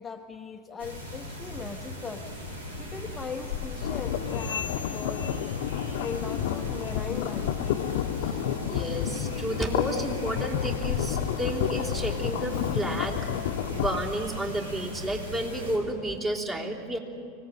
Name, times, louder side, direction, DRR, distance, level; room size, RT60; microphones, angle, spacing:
voice 1, 0.0-2.3 2.8-5.3 6.0-7.6, left 5 dB, 20° left, 4 dB, 1.0 m, -39 dB
sound 1, 0.8-15.8, equal, 80° right, 4.6 m, -39 dB
sound 2, 3.5-14.0, left 10 dB, 65° left, 1.0 m, -30 dB
sound 3, 4.3-6.5 6.8-7.1 7.6-7.8 8.4-8.6 9.3-9.4 10.1-10.2, left 8 dB, 80° left, 0.6 m, -42 dB
voice 2, 8.7-17.0, right 1 dB, 20° right, 0 dB, 3.5 m, -32 dB
24.5 x 18.0 x 9.3 m, 2.6 s
hypercardioid pair, 90°, 0 cm